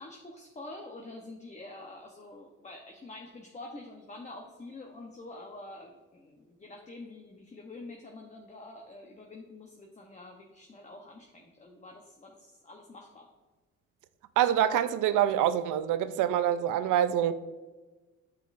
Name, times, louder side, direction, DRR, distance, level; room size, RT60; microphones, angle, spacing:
voice 1, 0.0-13.3, left 2 dB, 25° left, 0.9 m, -47 dB
voice 2, 14.4-17.3, right 10 dB, 85° right, 0.5 m, -25 dB
8.4 x 7.5 x 2.6 m
cardioid pair, 90°, 30 cm